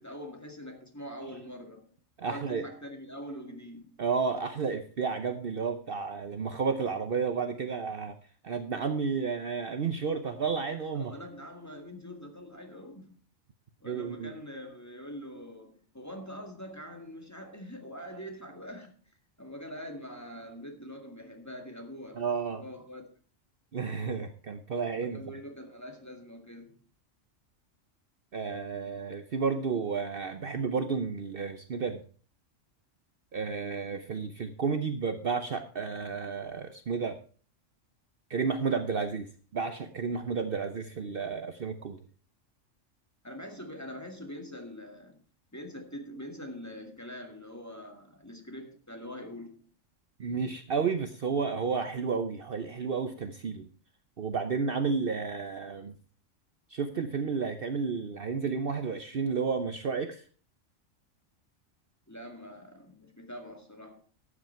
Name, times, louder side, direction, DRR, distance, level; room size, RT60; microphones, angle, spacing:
voice 1, 0.0-2.0 2.3-4.0 10.9-13.2 13.8-23.0 25.0-26.8 43.2-45.2 45.5-49.6 62.1-64.0, equal, 15° left, 2.0 m, -44 dB
voice 2, 2.2-2.6 4.0-8.2 8.4-11.1 13.8-14.3 22.2-22.6 23.7-25.2 28.3-32.0 33.3-37.2 38.3-42.0 50.2-53.7 54.2-56.0 56.7-60.2, right 5 dB, 50° right, 0.9 m, -31 dB
12.5 x 8.6 x 4.5 m
omnidirectional pair, 1.3 m